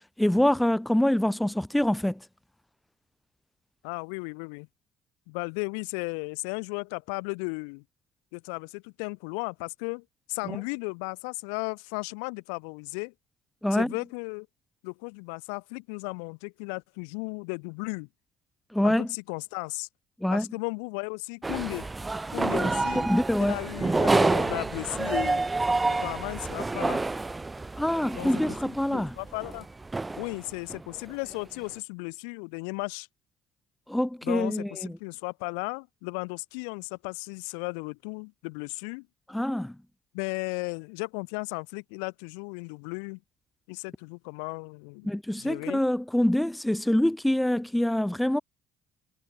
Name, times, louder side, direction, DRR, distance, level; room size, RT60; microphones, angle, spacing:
voice 1, 0.2-2.2 13.6-13.9 18.7-19.1 20.2-20.5 22.9-23.5 27.8-29.1 33.9-34.9 39.3-39.7 45.0-48.4, left 1 dB, 5° left, 1.1 m, -25 dB
voice 2, 3.8-4.7 5.3-7.8 8.3-13.1 13.7-14.5 14.8-18.1 18.8-19.9 20.3-21.9 22.3-23.1 23.4-25.4 26.0-27.0 28.1-29.7 30.2-33.1 34.2-39.1 40.1-43.2 43.7-45.1 45.4-45.8, left 40 dB or more, 70° left, 4.7 m, -35 dB
sound 1, 21.4-30.4 30.7-30.8 31.1-31.3, right 3 dB, 20° right, 2.5 m, -28 dB
figure-of-eight pair, 55°, 0 cm